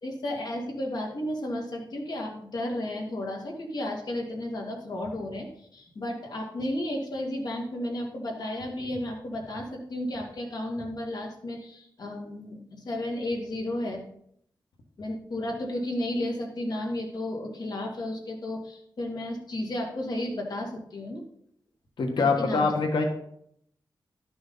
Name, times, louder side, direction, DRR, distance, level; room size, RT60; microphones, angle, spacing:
voice 1, 0.0-14.0 15.0-21.2 22.2-22.7, left 1 dB, 60° left, 0 dB, 2.2 m, -33 dB
voice 2, 22.0-23.1, left 4 dB, 80° left, 3 dB, 1.4 m, -24 dB
11.5 x 6.3 x 3.9 m, 0.69 s
wide cardioid pair, 150°, 8 cm